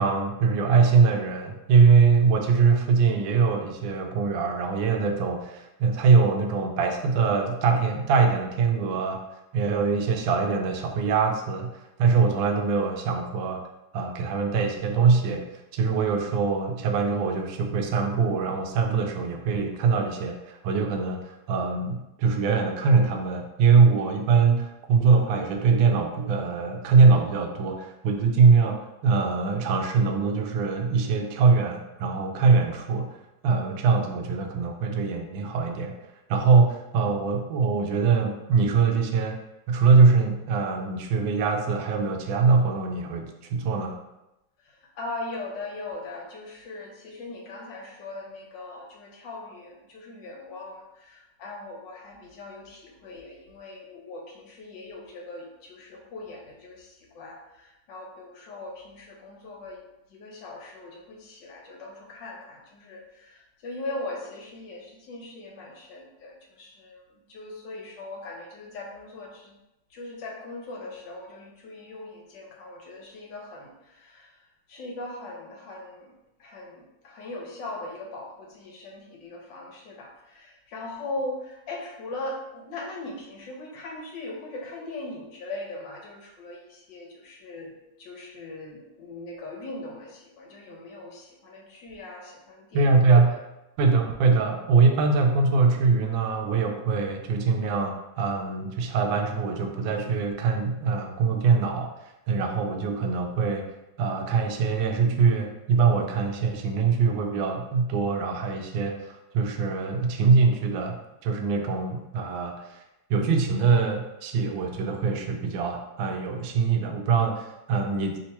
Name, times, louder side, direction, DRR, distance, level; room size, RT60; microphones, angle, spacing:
voice 1, 0.0-9.2 9.5-13.6 13.9-15.4 15.7-33.2 33.4-36.0 36.3-39.4 39.7-44.0 92.7-93.4 93.8-101.9 102.3-103.6 104.0-112.8 113.1-118.2, right 5 dB, 85° right, 3 dB, 1.3 m, -22 dB
voice 2, 44.7-59.8 60.1-69.5 69.9-74.3 74.7-76.1 76.4-87.7 88.0-92.9 93.3-93.4, left 2 dB, 75° left, -1 dB, 1.5 m, -40 dB
3.5 x 2.8 x 4.3 m, 0.92 s
omnidirectional pair, 2.1 m